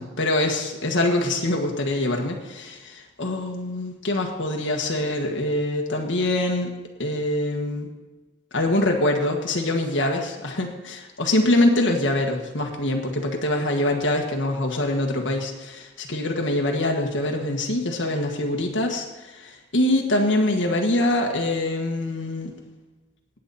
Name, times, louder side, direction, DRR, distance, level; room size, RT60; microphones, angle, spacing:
voice 1, 0.0-6.7 7.0-7.9 8.5-22.5, left 1 dB, 85° left, 2 dB, 1.6 m, -24 dB
18.0 x 8.5 x 4.2 m, 1.1 s
head